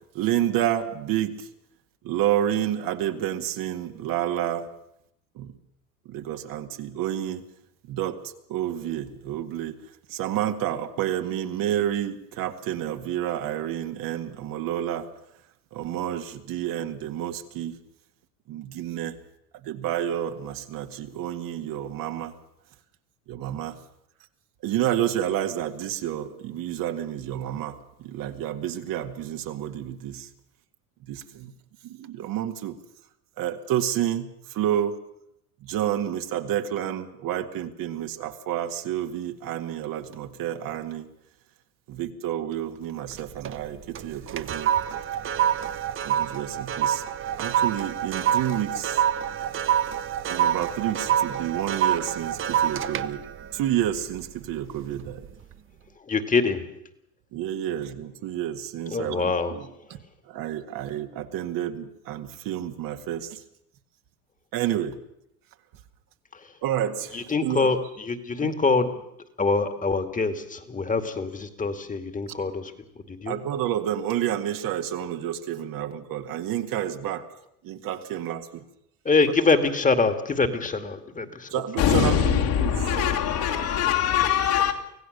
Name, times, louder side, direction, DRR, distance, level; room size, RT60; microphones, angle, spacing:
voice 1, 0.1-1.5 2.0-4.7 5.4-5.5 6.1-7.4 7.9-8.2 8.5-9.8 10.1-15.1 15.7-17.8 18.5-19.2 19.6-22.3 23.3-23.8 24.6-30.3 31.1-31.5 31.8-32.8 33.4-35.0 35.6-41.1 41.9-44.7 46.0-47.0 47.4-49.0 50.3-53.3 53.5-55.3 57.3-60.0 60.3-63.4 64.5-65.0 66.6-67.7 68.4-68.5 73.3-77.3 77.6-78.6 81.5-83.2, right 11 dB, 50° right, 1.9 m, -29 dB
sound 1, 43.1-43.6 44.0-54.5 55.0-55.3, right 10 dB, 30° right, 0.9 m, -26 dB
voice 2, 56.1-56.6 58.9-59.5 67.1-69.0 69.4-72.7 73.1-73.4 79.1-81.5, left 4 dB, 15° left, 2.3 m, -24 dB
voice 3, 81.8-84.7, left 9 dB, 55° left, 3.3 m, -22 dB
25.0 x 16.5 x 6.7 m
hypercardioid pair, 90°, 45 cm